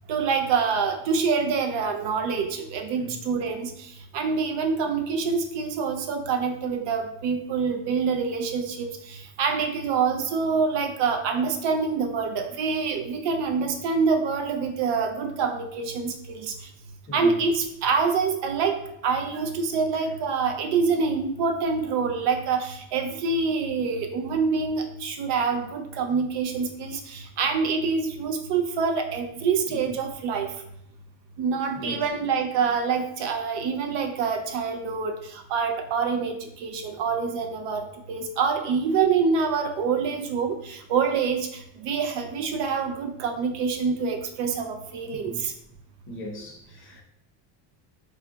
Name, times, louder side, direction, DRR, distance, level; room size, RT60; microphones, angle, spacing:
voice 1, 0.1-3.7 4.1-16.5 17.1-18.8 19.0-30.5 31.4-45.5, right 5 dB, 65° right, 4 dB, 0.5 m, -26 dB
voice 2, 17.1-17.4 29.7-29.8 31.8-32.1 45.2-45.4 46.1-47.0, equal, 25° left, -1 dB, 0.6 m, -38 dB
2.4 x 2.2 x 3.8 m, 0.76 s
cardioid pair, 155°, 46 cm